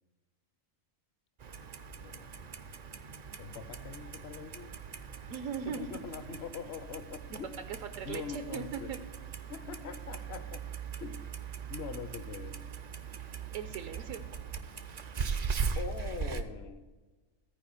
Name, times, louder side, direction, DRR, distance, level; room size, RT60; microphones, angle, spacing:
Clock, 1.4-16.4, right 6 dB, 55° right, 0.4 m, -40 dB
voice 1, 1.9-2.3 3.4-4.7 5.7-7.5 8.0-8.9 9.5-10.6 11.0-11.2 11.7-12.6 15.8-16.8, left 6 dB, 60° left, 10 dB, 0.9 m, -43 dB
voice 2, 5.3-5.9 7.3-7.4 7.7-9.0 13.5-14.2, right 7 dB, 80° right, 8 dB, 1.0 m, -39 dB
13.5 x 4.8 x 6.6 m, 1.3 s
omnidirectional pair, 1.4 m